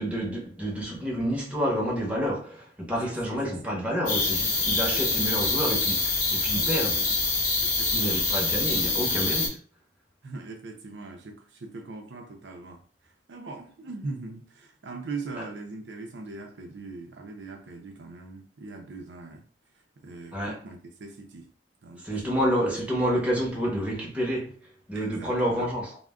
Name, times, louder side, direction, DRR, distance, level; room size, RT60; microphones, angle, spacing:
voice 1, 0.0-7.0 7.9-9.6 20.3-20.6 22.0-24.5 24.9-26.0, equal, 10° right, 0.8 m, -29 dB
voice 2, 3.0-3.7 4.9-5.1 6.6-7.2 7.6-8.3 8.6-9.2 10.2-12.8 13.3-19.4 20.0-21.5 21.8-22.0 24.9-25.7, right 3 dB, 75° right, 0.5 m, -41 dB
sound 1, 4.1-9.5, left 3 dB, 50° left, 0.9 m, -25 dB
2.3 x 2.1 x 3.5 m
head